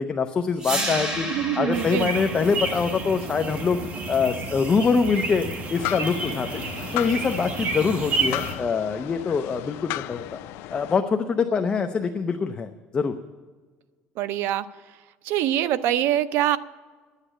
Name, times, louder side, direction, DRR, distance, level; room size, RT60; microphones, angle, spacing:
voice 1, 0.0-1.3 1.6-3.8 4.1-6.6 6.9-10.4 10.7-13.1, left 5 dB, 25° left, 6 dB, 0.6 m, -24 dB
sound 1, 0.6-6.6, right 1 dB, 20° right, 2.2 m, -34 dB
voice 2, 1.3-2.1 14.2-14.7 15.2-16.6, right 12 dB, 70° right, 14 dB, 0.6 m, -24 dB
sound 2, 1.7-8.5, right 3 dB, 40° right, 1.5 m, -31 dB
sound 3, 5.7-11.0, left 14 dB, 75° left, 0.5 m, -35 dB
11.0 x 8.2 x 8.8 m, 1.4 s
cardioid pair, 155°, 4 cm